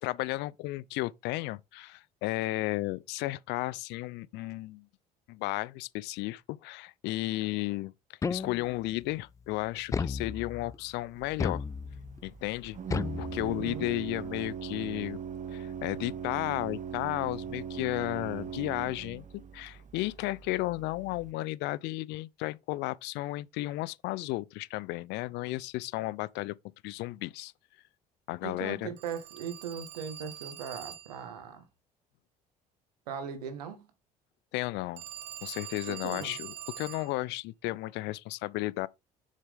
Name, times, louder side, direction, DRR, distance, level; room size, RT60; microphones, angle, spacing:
voice 1, 0.0-4.9 5.3-7.9 8.3-11.6 12.2-15.2 15.5-26.6 26.8-27.5 28.3-28.9 34.5-35.0 35.4-38.9, left 19 dB, 60° left, 0.6 m, -34 dB
sound 1, 8.2-8.9 9.9-10.8 11.4-12.2 12.9-13.9, left 5 dB, 15° left, 0.3 m, -34 dB
Organ, 11.2-21.3, right 8 dB, 40° right, 1.3 m, -40 dB
voice 2, 13.4-13.9 28.4-31.6 33.1-33.9 35.9-36.4, right 7 dB, 80° right, 1.8 m, -39 dB
Telephone, 29.0-31.3 35.0-37.2, right 11 dB, 60° right, 1.8 m, -44 dB
7.2 x 6.4 x 3.7 m
hypercardioid pair, 60°, 20 cm